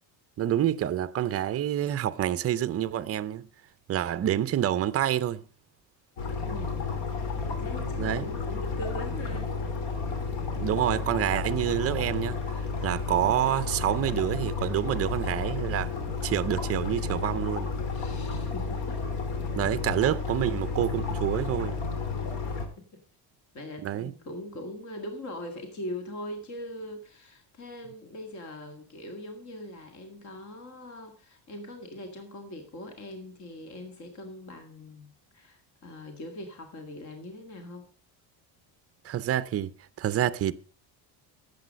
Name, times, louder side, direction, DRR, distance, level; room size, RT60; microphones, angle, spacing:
voice 1, 0.4-3.5 3.9-5.4 8.0-8.3 10.6-12.4 12.8-15.9 16.2-17.7 19.5-21.8 23.8-24.1 39.0-39.7 40.0-40.5, right 11 dB, 35° right, 0.5 m, -27 dB
sound 1, 6.2-22.7, left 4 dB, 75° left, 3.1 m, -32 dB
voice 2, 6.4-9.6 17.9-19.0 22.8-23.0 23.5-35.1 35.3-37.9, left 1 dB, 40° left, 2.0 m, -41 dB
12.0 x 8.4 x 5.2 m
cardioid pair, 160°, 45 cm